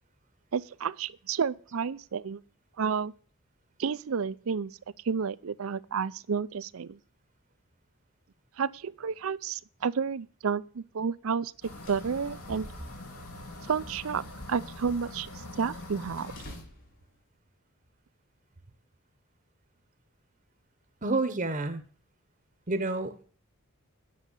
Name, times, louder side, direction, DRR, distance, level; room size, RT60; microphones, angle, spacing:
voice 1, 0.5-2.4 2.8-3.1 3.8-4.7 5.0-7.0 8.6-11.5 11.9-12.7 13.7-15.3 15.6-16.3, right 6 dB, 70° right, 0.5 m, -31 dB
sound 1, 11.5-17.3, equal, 55° left, 4.1 m, -54 dB
sound 2, 11.6-16.6, left 1 dB, 85° left, 2.6 m, -43 dB
voice 2, 21.0-21.8 22.7-23.2, right 2 dB, 35° right, 0.9 m, -29 dB
9.8 x 6.6 x 8.1 m
head